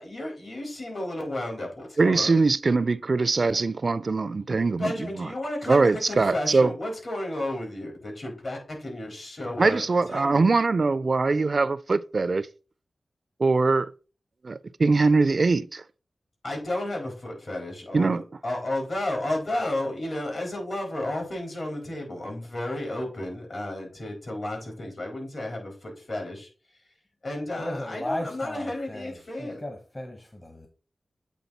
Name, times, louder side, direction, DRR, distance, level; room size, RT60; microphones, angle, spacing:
voice 1, 0.0-2.3 4.8-9.8 10.1-10.5 16.4-26.5 27.2-29.6, left 1 dB, 60° left, 4.0 m, -32 dB
voice 2, 2.0-5.3 5.7-6.7 9.6-12.5 13.4-13.9 14.4-15.8 17.9-18.2, right 3 dB, 60° right, 0.4 m, -22 dB
voice 3, 27.6-29.1 29.4-30.7, left 1 dB, 35° left, 1.2 m, -36 dB
8.3 x 3.7 x 4.1 m
cardioid pair, 50°, 0 cm